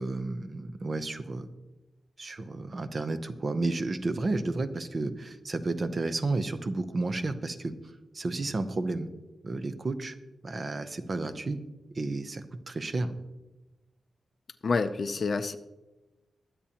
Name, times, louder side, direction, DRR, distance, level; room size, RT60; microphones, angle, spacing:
voice 1, 0.0-1.5 2.2-7.7 8.1-9.1 9.4-10.2 10.4-11.6 11.9-13.2, right 2 dB, 35° right, 9 dB, 0.8 m, -32 dB
voice 2, 14.6-15.6, left 4 dB, 45° left, 10 dB, 0.6 m, -28 dB
22.5 x 8.5 x 2.9 m, 1.1 s
wide cardioid pair, 150°, 0 cm